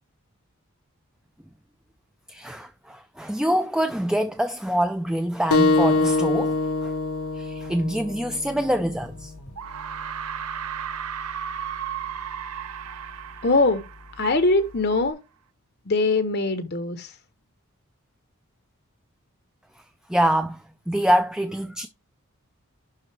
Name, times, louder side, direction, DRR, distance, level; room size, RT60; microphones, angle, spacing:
voice 1, 2.3-6.6 7.4-9.3 20.1-20.6 20.9-21.9, equal, 5° right, 0.4 m, -25 dB
sound 1, 5.5-10.6, left 3 dB, 75° left, 1.0 m, -25 dB
sound 2, 8.7-8.8 9.6-14.8, right 8 dB, 80° right, 0.7 m, -34 dB
voice 2, 13.4-13.8 14.2-15.2 15.9-17.1, left 2 dB, 45° left, 0.8 m, -22 dB
11.5 x 3.9 x 3.3 m
head